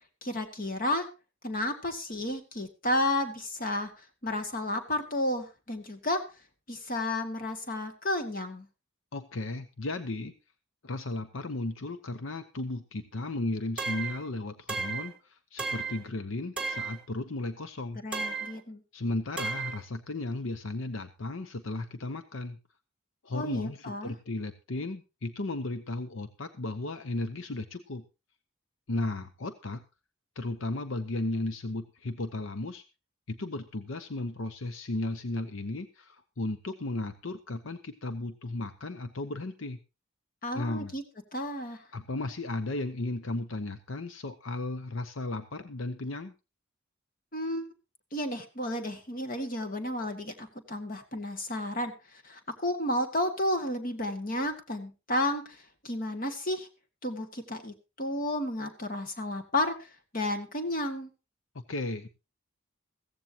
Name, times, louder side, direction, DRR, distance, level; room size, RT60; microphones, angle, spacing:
voice 1, 0.2-1.1 1.4-3.9 4.2-6.2 6.7-8.7 18.0-18.8 23.3-24.1 40.4-41.0 41.3-41.8 47.3-47.7 48.1-51.9 52.2-55.6 55.8-56.7 57.0-59.7 60.1-61.1, left 1 dB, 40° left, 6 dB, 2.0 m, -32 dB
voice 2, 9.1-10.3 10.8-18.0 18.9-22.6 23.2-28.0 28.9-29.8 30.4-32.8 33.3-39.8 40.5-40.9 41.9-46.3 61.7-62.1, left 2 dB, 75° left, 10 dB, 0.8 m, -35 dB
sound 1, 13.8-14.2 14.7-15.1 15.6-16.0 16.6-17.0 18.1-18.6 19.4-19.8, right 4 dB, 5° right, 1.9 m, -34 dB
15.5 x 15.0 x 2.9 m, 0.28 s
head